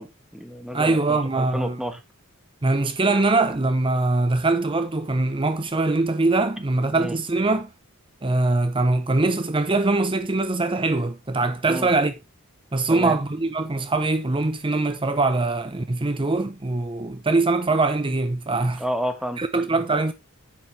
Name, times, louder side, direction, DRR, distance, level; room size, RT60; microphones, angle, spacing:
voice 1, 0.0-2.0 6.9-7.2 11.7-11.9 12.9-13.2 18.8-19.4, equal, ahead, 1.3 m, -30 dB
voice 2, 0.7-1.8 2.6-7.7 8.2-12.1 12.7-18.8 19.4-20.1, right 2 dB, 25° right, 0.7 m, -22 dB
10.5 x 7.4 x 3.3 m
head